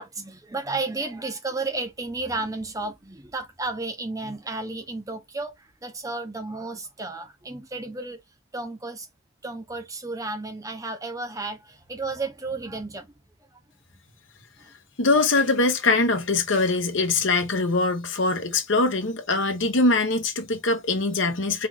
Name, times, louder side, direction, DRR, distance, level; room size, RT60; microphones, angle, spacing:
voice 1, 0.0-8.2 8.5-9.1 9.4-13.1 14.6-14.7, right 3 dB, 15° right, 0.8 m, -33 dB
voice 2, 15.0-21.7, left 3 dB, 60° left, 1.1 m, -22 dB
4.7 x 2.6 x 3.6 m
head